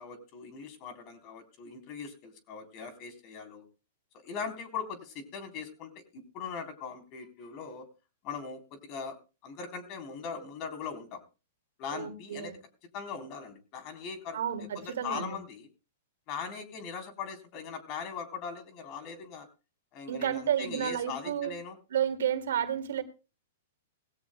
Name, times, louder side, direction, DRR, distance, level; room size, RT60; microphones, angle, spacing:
voice 1, 0.0-3.6 4.1-7.9 8.2-9.2 9.4-11.2 11.8-12.6 12.9-14.4 14.8-15.7 16.3-19.5 19.9-21.8, left 6 dB, 40° left, 8 dB, 3.7 m, -40 dB
voice 2, 11.9-12.6 14.3-15.4 20.1-21.5 21.9-23.0, right 9 dB, 75° right, 8 dB, 2.2 m, -31 dB
20.0 x 16.5 x 2.2 m, 0.31 s
hypercardioid pair, 120°, 0 cm